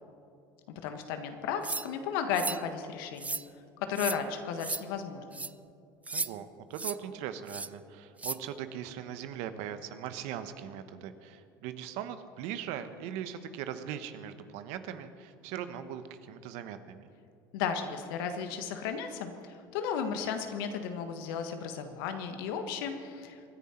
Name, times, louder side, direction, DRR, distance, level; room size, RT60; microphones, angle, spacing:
voice 1, 0.8-3.4 3.8-5.5 17.5-23.4, left 6 dB, 75° left, 7 dB, 1.5 m, -34 dB
sound 1, 1.6-1.9 2.3-2.6 3.2-3.4 3.9-4.2 4.6-4.8 5.3-5.5 6.1-6.3 6.7-7.0 7.5-7.7 8.2-8.4, right 3 dB, 10° right, 0.4 m, -34 dB
voice 2, 6.1-17.1, right 9 dB, 70° right, 10 dB, 1.1 m, -40 dB
24.5 x 10.5 x 4.4 m, 2.6 s
hypercardioid pair, 85°, 12 cm